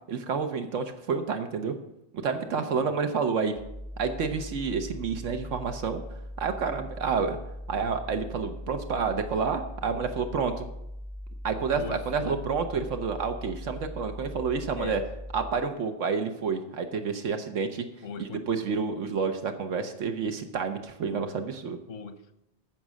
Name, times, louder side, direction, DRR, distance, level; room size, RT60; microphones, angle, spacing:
voice 1, 0.1-1.7 2.2-3.6 4.0-6.0 6.4-7.4 7.7-10.7 11.4-15.0 15.3-17.9 18.2-21.8, right 5 dB, 85° right, 1.3 m, -29 dB
voice 2, 2.5-3.0 11.7-12.4 14.7-15.0 18.0-18.5 21.1-21.4 21.9-22.4, left 6 dB, 85° left, 1.3 m, -40 dB
sound 1, 3.5-15.5, equal, 35° right, 2.6 m, -40 dB
14.5 x 6.2 x 6.3 m
omnidirectional pair, 1.2 m